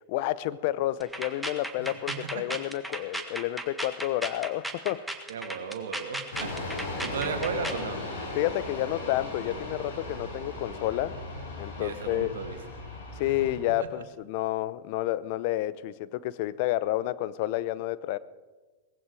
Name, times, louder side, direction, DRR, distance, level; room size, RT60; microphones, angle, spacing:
voice 1, 0.1-5.1 8.3-11.2 11.6-12.4 13.2-18.2, left 15 dB, 60° left, 17 dB, 0.7 m, -30 dB
sound 1, 1.0-7.9, right 1 dB, 5° right, 1.6 m, -36 dB
voice 2, 1.8-2.6 5.3-8.0 11.8-12.6 13.8-13.9, right 6 dB, 80° right, 7 dB, 2.0 m, -36 dB
sound 2, 6.3-13.6, left 2 dB, 80° left, 6.0 m, -37 dB
18.5 x 15.5 x 4.9 m, 1.3 s
hypercardioid pair, 110°, 0 cm